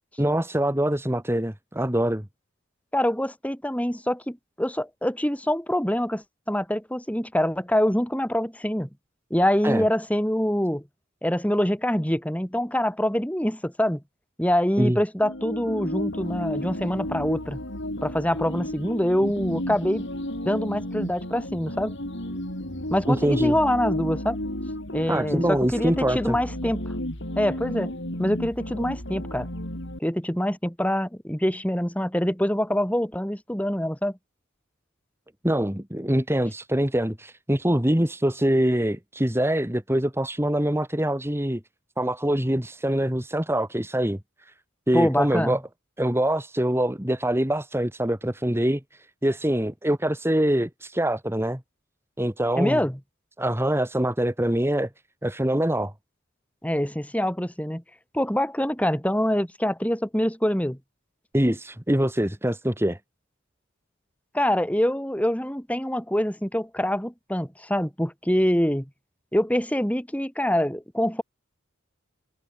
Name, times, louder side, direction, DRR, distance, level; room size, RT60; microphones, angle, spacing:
voice 1, 0.2-2.3 9.6-9.9 14.8-15.0 23.1-23.6 25.1-26.4 35.4-41.6 42.0-44.5 44.9-45.6 46.0-51.6 52.2-52.8 53.4-54.9 55.2-55.9 61.3-63.0, right 1 dB, 10° right, 1.9 m, -24 dB
voice 2, 2.9-8.9 9.3-10.8 11.2-14.0 14.4-17.6 18.0-20.0 20.4-21.9 22.9-24.4 24.9-26.8 27.4-27.9 28.2-29.5 30.0-34.2 44.9-45.6 52.6-53.0 56.6-57.8 58.1-60.8 64.3-68.9 69.3-71.2, equal, 5° left, 5.2 m, -25 dB
sound 1, 15.2-30.0, left 1 dB, 60° left, 7.9 m, -33 dB
head